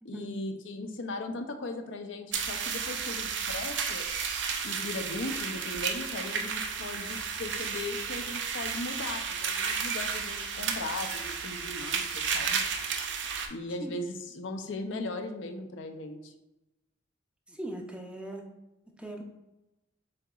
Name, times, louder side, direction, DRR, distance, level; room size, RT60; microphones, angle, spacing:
voice 1, 0.0-4.1 4.6-12.6 13.5-16.3, left 2 dB, 90° left, 6 dB, 0.5 m, -38 dB
sound 1, 2.3-13.5, right 6 dB, 70° right, 0.5 m, -33 dB
voice 2, 17.5-18.5 19.0-19.2, right 1 dB, 5° right, 2 dB, 0.5 m, -39 dB
7.6 x 2.8 x 2.3 m, 0.98 s
head